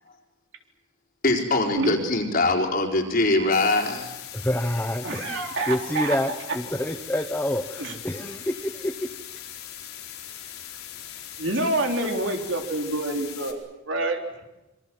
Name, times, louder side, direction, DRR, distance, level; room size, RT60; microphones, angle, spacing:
voice 1, 1.2-4.1, left 2 dB, 45° left, 1 dB, 4.4 m, -22 dB
sound 1, 3.5-13.5, left 10 dB, 90° left, 4.6 m, -40 dB
voice 2, 4.3-8.9, left 1 dB, 10° left, 6 dB, 1.0 m, -28 dB
voice 3, 5.0-6.4 7.8-8.0 11.4-13.6 13.9-14.2, right 2 dB, 60° right, 3 dB, 3.7 m, -27 dB
26.5 x 25.0 x 7.8 m, 1.0 s
head